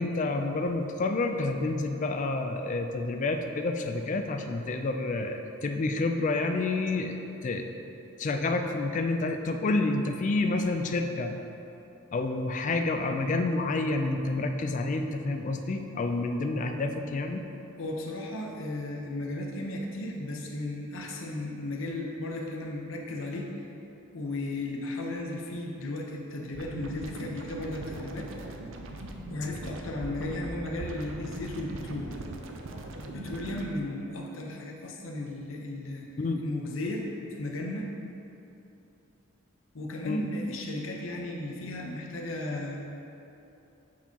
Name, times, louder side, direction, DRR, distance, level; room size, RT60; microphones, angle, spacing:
voice 1, 0.0-7.7 8.2-11.3 12.1-17.4 36.2-36.4 40.0-40.3, left 2 dB, 35° left, 5 dB, 0.3 m, -29 dB
voice 2, 17.8-23.7 24.1-28.3 29.3-32.6 33.0-36.1 36.4-37.1 37.4-37.9 39.7-42.8, left 2 dB, 65° left, 0 dB, 0.7 m, -35 dB
sound 1, 26.5-33.7, right 2 dB, 65° right, 0.5 m, -40 dB
8.4 x 4.4 x 2.8 m, 2.8 s
head